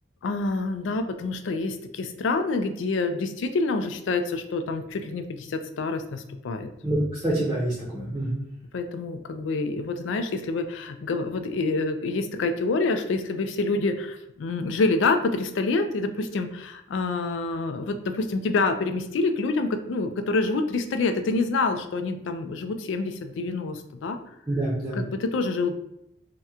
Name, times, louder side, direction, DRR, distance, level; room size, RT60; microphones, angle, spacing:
voice 1, 0.2-6.7 8.7-24.2 24.9-25.7, left 3 dB, 90° left, 8 dB, 0.4 m, -27 dB
voice 2, 6.8-8.4 24.5-25.0, right 1 dB, 15° right, -7 dB, 0.6 m, -26 dB
2.8 x 2.2 x 3.6 m, 0.80 s
head